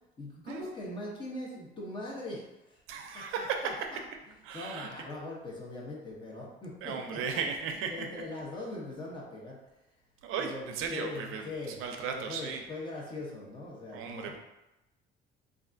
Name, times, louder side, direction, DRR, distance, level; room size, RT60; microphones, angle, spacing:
voice 1, 0.2-2.8 3.1-4.0 4.5-7.4 7.9-9.6 10.4-11.8 12.1-14.3, left 2 dB, 25° left, -4 dB, 0.7 m, -41 dB
voice 2, 2.9-3.7 4.4-4.9 6.8-7.9 10.2-12.6 13.9-14.4, right 6 dB, 80° right, 4 dB, 0.4 m, -36 dB
3.2 x 2.4 x 2.5 m, 0.95 s
cardioid pair, 165°, 21 cm